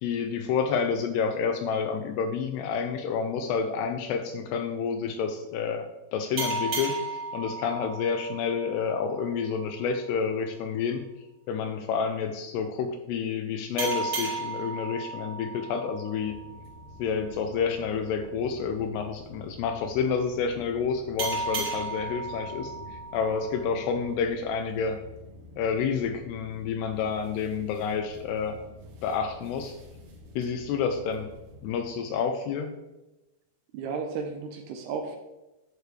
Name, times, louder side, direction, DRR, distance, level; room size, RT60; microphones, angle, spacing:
voice 1, 0.0-11.0 11.5-16.4 17.0-25.0 25.6-28.6 29.0-29.8 30.4-31.3 31.6-32.7, left 6 dB, 80° left, 6 dB, 2.5 m, -29 dB
sound 1, 6.4-9.6 13.8-17.0 21.2-24.1, right 3 dB, 35° right, 2.6 m, -35 dB
sound 2, 16.2-31.8, equal, 60° right, 2.3 m, -49 dB
voice 2, 33.7-35.2, right 5 dB, 80° right, 5 dB, 2.5 m, -33 dB
11.0 x 7.0 x 3.3 m, 1.0 s
omnidirectional pair, 5.2 m